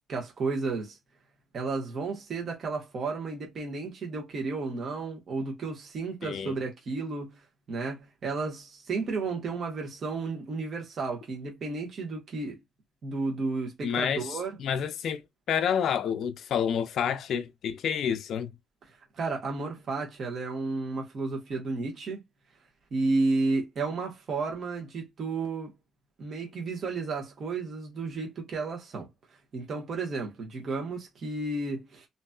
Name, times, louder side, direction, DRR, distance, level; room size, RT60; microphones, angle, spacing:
voice 1, 0.1-1.0 1.5-7.4 7.7-12.6 13.0-14.6 19.1-22.2 22.9-25.7 26.2-29.1 29.5-32.1, right 3 dB, 55° right, 1.4 m, -32 dB
voice 2, 6.2-6.6 13.8-15.2 15.5-18.5, left 8 dB, 70° left, 0.4 m, -29 dB
3.0 x 2.7 x 2.3 m
cardioid pair, 90°, 0 cm